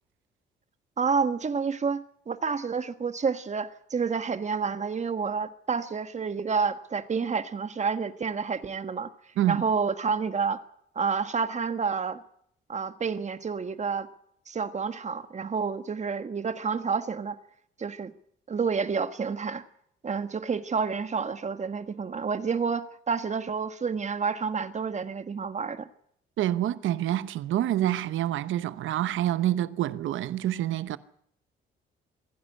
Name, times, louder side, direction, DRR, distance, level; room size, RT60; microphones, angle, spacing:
voice 1, 1.0-9.1 9.5-10.6 10.9-12.2 12.7-14.1 14.5-17.4 17.8-18.1 18.5-19.6 20.0-25.9, right 5 dB, 35° right, 1.5 m, -29 dB
voice 2, 26.4-31.0, right 12 dB, 80° right, 1.0 m, -27 dB
26.0 x 11.0 x 9.9 m
cardioid pair, 90°, 20 cm